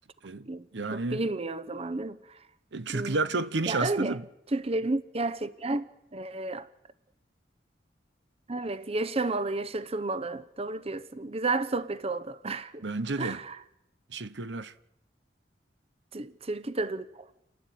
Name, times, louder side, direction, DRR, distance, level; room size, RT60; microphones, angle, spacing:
voice 1, 0.2-1.3 2.7-4.2 12.8-13.4 14.1-14.7, right 3 dB, 85° right, 1.0 m, -31 dB
voice 2, 0.9-2.4 2.9-3.2 3.7-4.2 4.5-6.7 8.5-12.8 13.2-13.6 16.1-17.3, right 2 dB, 35° right, 0.9 m, -32 dB
29.0 x 12.5 x 9.3 m
head